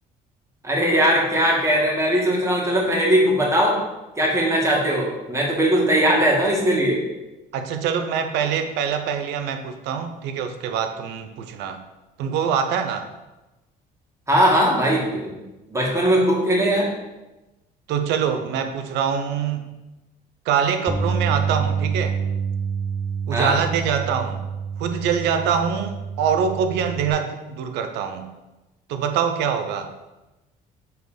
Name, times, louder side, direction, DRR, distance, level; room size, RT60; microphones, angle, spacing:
voice 1, 0.6-3.8 4.2-7.0 14.3-15.3 15.7-16.9 23.3-23.5, equal, 15° right, -2 dB, 1.9 m, -19 dB
voice 2, 7.5-11.8 12.2-13.1 17.9-19.7 20.5-22.2 23.3-24.4 24.8-28.3 28.9-29.9, right 7 dB, 90° right, 8 dB, 0.7 m, -24 dB
Bass guitar, 20.9-27.1, right 6 dB, 5° left, 0.9 m, -27 dB
5.6 x 3.9 x 5.1 m, 1.0 s
cardioid pair, 110°, 17 cm